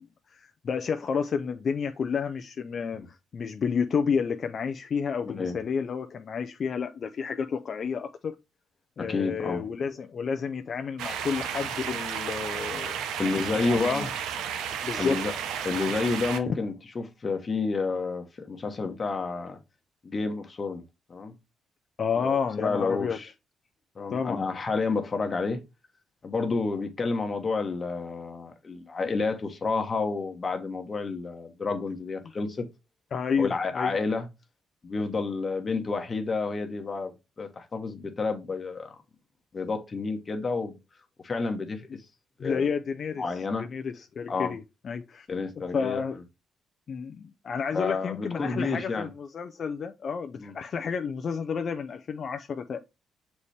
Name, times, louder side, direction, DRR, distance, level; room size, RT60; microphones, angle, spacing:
voice 1, 0.0-8.4 9.0-13.0 13.5-14.1 14.8-15.2 16.5-16.6 22.0-23.2 24.1-24.5 33.1-33.9 42.4-43.3 43.6-45.3 45.7-46.2 46.9-52.8, left 6 dB, 50° left, 0.6 m, -30 dB
voice 2, 5.3-5.6 9.0-9.6 13.2-14.1 15.0-15.3 15.6-19.6 20.0-20.8 21.1-21.3 22.2-23.3 24.0-25.6 26.2-32.7 33.4-34.3 34.8-38.9 39.5-40.8 41.2-42.0 42.4-42.7 43.2-43.7 44.3-44.5 45.3-46.0 47.7-49.1 50.4-50.5, left 4 dB, 35° left, 1.1 m, -30 dB
sound 1, 11.0-16.4, right 8 dB, 90° right, 0.9 m, -33 dB
6.9 x 4.2 x 3.3 m
cardioid pair, 90°, 0 cm